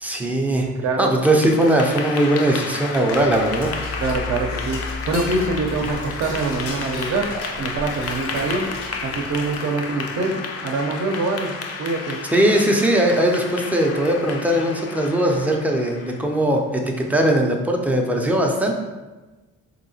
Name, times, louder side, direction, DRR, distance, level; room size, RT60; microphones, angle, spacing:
voice 1, 0.0-0.7 1.0-3.7 12.3-18.7, right 1 dB, 5° right, 1 dB, 0.4 m, -19 dB
voice 2, 0.6-1.1 4.0-7.3 7.5-8.7 9.0-12.2, right 3 dB, 60° right, 3 dB, 0.6 m, -25 dB
Clapping / Applause, 1.0-16.3, left 4 dB, 50° left, 0.5 m, -32 dB
Dishes pots and pans / Cutlery silverware, 3.1-9.9, left 3 dB, 85° left, 0.8 m, -33 dB
3.5 x 2.8 x 2.7 m, 1.2 s
cardioid pair, 90°, 30 cm